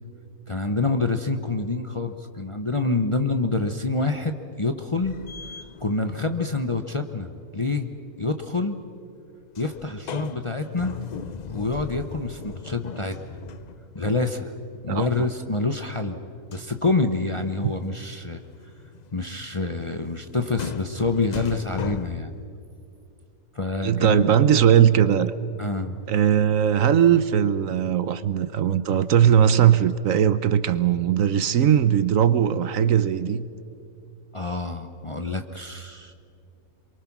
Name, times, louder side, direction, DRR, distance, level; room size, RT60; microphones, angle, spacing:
voice 1, 0.5-5.2 5.8-7.9 8.2-8.8 9.6-11.0 11.5-13.2 13.9-14.5 14.8-16.2 16.5-18.4 19.1-22.3 23.5-24.2 25.6-26.0 34.3-36.1, left 3 dB, 25° left, 6 dB, 0.7 m, -27 dB
sound 1, 5.0-6.5 9.5-14.2 16.5-22.4, left 7 dB, 80° left, 0.3 m, -38 dB
voice 2, 23.8-25.3 26.1-33.4, right 9 dB, 65° right, 14 dB, 1.1 m, -19 dB
27.5 x 23.0 x 6.0 m, 2.6 s
omnidirectional pair, 1.6 m